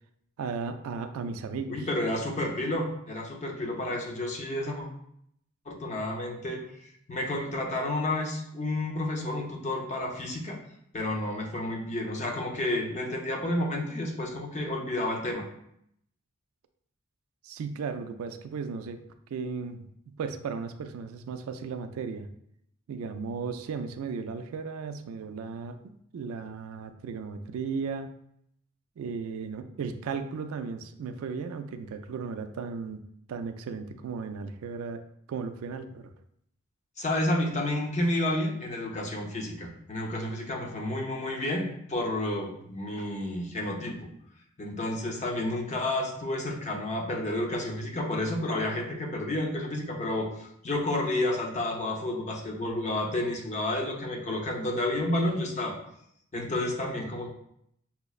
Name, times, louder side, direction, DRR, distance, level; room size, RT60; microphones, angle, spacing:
voice 1, 0.4-1.8 17.4-19.0 19.3-19.9 20.2-22.3 22.9-25.8 26.1-28.1 29.0-33.0 33.3-35.0 35.3-36.1, right 5 dB, 70° right, 8 dB, 0.3 m, -35 dB
voice 2, 1.7-4.9 5.7-6.6 7.1-10.6 10.9-15.4 37.0-44.1 44.6-55.8 56.3-57.3, left 1 dB, 35° left, 1 dB, 0.6 m, -30 dB
5.6 x 2.0 x 2.3 m, 0.72 s
head